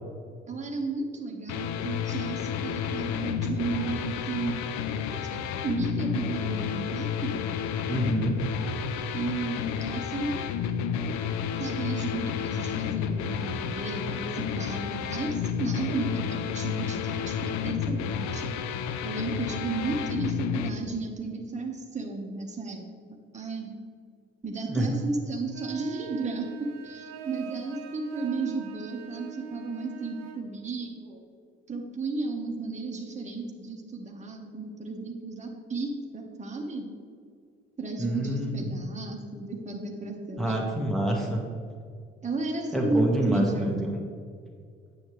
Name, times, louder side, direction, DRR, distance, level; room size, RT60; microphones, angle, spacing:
voice 1, 0.5-4.7 5.1-7.5 9.1-10.5 11.6-18.5 19.0-22.8 23.3-23.7 24.4-31.2 31.7-36.9 37.8-40.8 42.2-43.8, right 3 dB, 20° right, 1 dB, 1.4 m, -33 dB
sound 1, 1.5-20.7, left 7 dB, 60° left, 0.7 m, -31 dB
voice 2, 7.9-8.4 24.7-24.9 38.0-38.8 40.4-41.4 42.7-44.0, right 1 dB, ahead, -1 dB, 1.6 m, -27 dB
sound 2, 25.5-30.4, right 8 dB, 55° right, 1.0 m, -42 dB
9.3 x 7.6 x 3.3 m, 2.2 s
hypercardioid pair, 50°, 32 cm